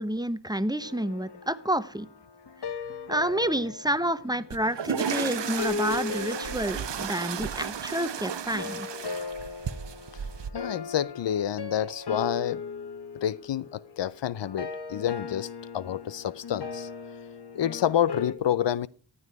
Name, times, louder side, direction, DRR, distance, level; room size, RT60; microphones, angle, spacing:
voice 1, 0.0-2.1 3.1-8.9, right 1 dB, 10° right, 0.9 m, -29 dB
sound 1, 0.8-8.0 8.6-18.3, left 4 dB, 65° left, 1.4 m, -38 dB
sound 2, 4.5-10.5, right 8 dB, 85° right, 0.8 m, -34 dB
voice 2, 10.5-12.6 13.2-15.5 15.7-16.9 17.5-18.9, left 10 dB, 90° left, 0.6 m, -28 dB
15.0 x 9.7 x 4.7 m
wide cardioid pair, 60°, 42 cm